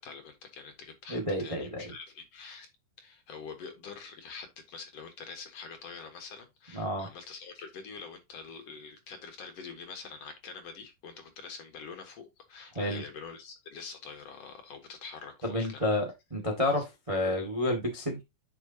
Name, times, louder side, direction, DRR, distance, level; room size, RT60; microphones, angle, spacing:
voice 1, 0.0-2.7 3.0-16.0 16.8-16.9, left 5 dB, 55° left, 2.3 m, -45 dB
voice 2, 1.1-1.8 6.7-7.1 12.7-13.0 15.4-18.2, left 1 dB, 20° right, 1.0 m, -30 dB
9.9 x 6.0 x 2.8 m
omnidirectional pair, 3.7 m